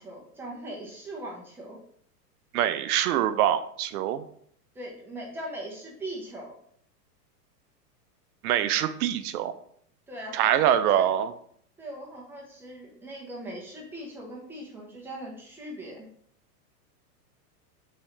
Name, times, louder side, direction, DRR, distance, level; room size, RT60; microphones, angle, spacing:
voice 1, 0.0-1.8 4.7-6.5 10.1-11.1 11.8-16.1, right 1 dB, 5° right, -3 dB, 0.4 m, -40 dB
voice 2, 2.5-4.2 8.4-9.5 10.3-11.3, right 11 dB, 65° right, 12 dB, 0.5 m, -24 dB
3.7 x 3.1 x 3.0 m, 0.63 s
hypercardioid pair, 130°, 49 cm